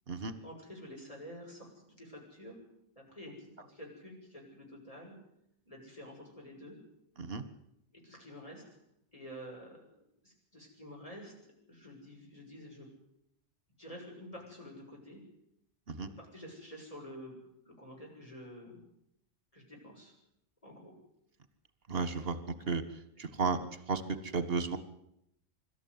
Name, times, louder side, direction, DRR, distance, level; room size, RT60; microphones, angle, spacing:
voice 1, 0.2-1.7 2.0-2.5 3.0-5.1 5.6-6.8 8.0-8.6 9.1-9.8 10.2-12.9 13.8-15.2 16.0-17.4 17.7-18.8 19.5-20.1 20.6-20.9, equal, 30° left, -1 dB, 7.0 m, -49 dB
voice 2, 21.9-22.8 23.2-24.8, right 4 dB, 55° right, 11 dB, 1.9 m, -34 dB
25.0 x 13.0 x 9.7 m, 0.79 s
omnidirectional pair, 1.2 m